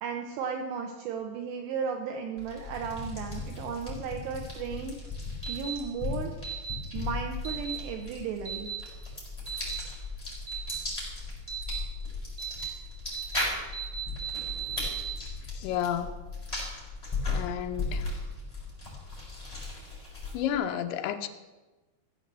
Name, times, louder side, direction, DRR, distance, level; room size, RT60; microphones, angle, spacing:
voice 1, 0.0-8.7, right 6 dB, 75° right, 3 dB, 3.0 m, -35 dB
sound 1, 2.4-20.6, left 3 dB, 10° left, 5.5 m, -37 dB
sound 2, 5.4-5.7 6.4-6.7 7.4-7.8 8.4-8.8 9.5-9.8 10.5-10.8 11.5-11.8 12.4-12.7 13.1-13.4 13.7-15.1, right 8 dB, 30° right, 1.3 m, -36 dB
voice 2, 15.6-16.1 17.3-18.0 20.3-21.3, left 10 dB, 75° left, 7 dB, 2.6 m, -31 dB
16.0 x 7.6 x 7.6 m, 1.2 s
omnidirectional pair, 5.1 m